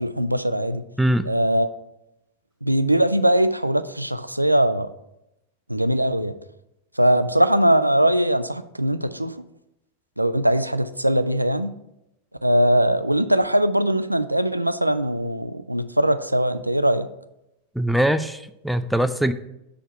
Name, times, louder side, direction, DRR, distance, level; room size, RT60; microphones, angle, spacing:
voice 1, 0.0-0.8 1.3-1.7 2.6-4.9 5.7-6.3 7.0-9.3 10.2-11.7 12.4-17.1, right 1 dB, 85° right, 12 dB, 0.4 m, -21 dB
voice 2, 17.8-19.3, right 1 dB, ahead, 10 dB, 0.4 m, -22 dB
6.3 x 4.5 x 6.5 m, 0.87 s
figure-of-eight pair, 90°, 0 cm